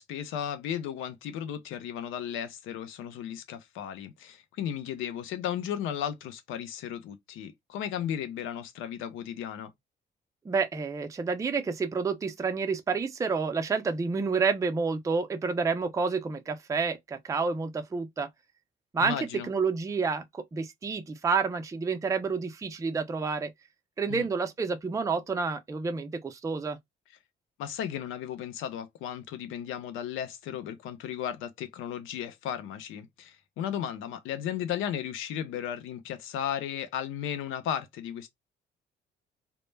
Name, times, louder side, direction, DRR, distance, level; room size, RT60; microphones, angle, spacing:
voice 1, 0.0-9.7 19.0-19.5 24.1-24.3 27.6-38.3, left 9 dB, 90° left, 0.5 m, -35 dB
voice 2, 10.5-18.3 18.9-19.2 19.5-23.5 24.0-26.8, right 4 dB, 15° right, 0.4 m, -29 dB
2.1 x 2.0 x 3.1 m
cardioid pair, 90°, 20 cm